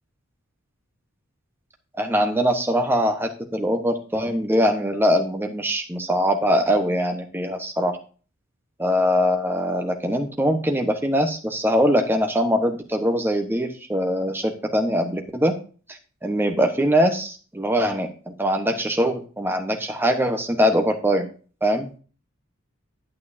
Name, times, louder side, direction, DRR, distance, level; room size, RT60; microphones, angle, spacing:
voice 1, 2.0-8.0 8.8-15.5 15.9-18.1 18.4-21.3 21.6-22.0, equal, 10° right, 4 dB, 1.1 m, -22 dB
9.4 x 8.7 x 2.7 m, 0.38 s
head